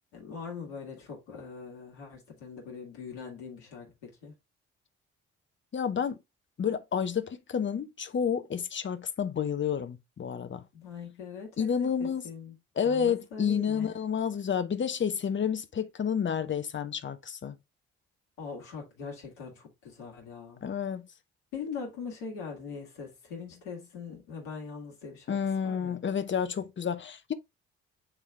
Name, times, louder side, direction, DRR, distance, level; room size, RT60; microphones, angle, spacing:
voice 1, 0.1-4.3 10.7-12.5 12.8-13.9 18.4-20.6 21.5-26.0, left 5 dB, 75° left, 2.2 m, -42 dB
voice 2, 5.7-6.2 6.6-10.7 11.6-12.2 12.8-17.6 20.6-21.1 25.3-27.3, left 7 dB, 35° left, 0.9 m, -30 dB
8.8 x 3.2 x 3.5 m
figure-of-eight pair, 40°, 35 cm